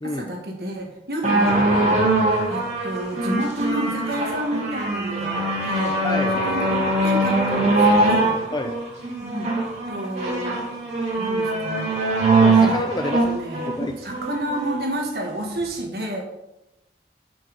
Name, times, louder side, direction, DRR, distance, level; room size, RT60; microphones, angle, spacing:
voice 1, 0.0-2.0 2.5-5.9 6.4-8.4 9.2-9.5 9.9-10.7 11.2-11.9 12.6-12.7 13.2-13.7 14.0-16.3, right 1 dB, 60° right, 1 dB, 1.5 m, -30 dB
sound 1, 1.2-14.8 15.6-15.7, right 2 dB, 40° right, 1.8 m, -22 dB
voice 2, 6.0-6.4 8.5-8.7 12.3-13.2 13.7-14.0, left 2 dB, 25° left, 5 dB, 0.4 m, -28 dB
5.6 x 5.5 x 5.1 m, 0.93 s
head